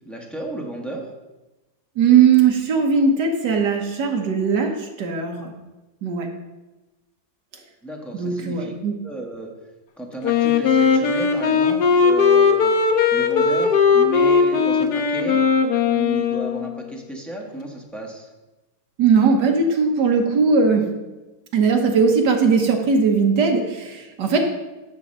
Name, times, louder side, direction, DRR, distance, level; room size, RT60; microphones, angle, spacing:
voice 1, 0.0-1.1 7.8-8.7 9.0-9.5 10.0-12.7 13.1-15.4 15.8-18.3, right 2 dB, ahead, -1 dB, 0.8 m, -33 dB
voice 2, 2.0-5.5 6.0-6.3 8.1-8.9 19.0-20.9 21.5-24.4, right 5 dB, 65° right, 3 dB, 1.6 m, -19 dB
Wind instrument woodwind instrument, 10.2-16.9, left 5 dB, 65° left, 1.2 m, -18 dB
10.5 x 3.9 x 6.4 m, 1.1 s
omnidirectional pair, 2.1 m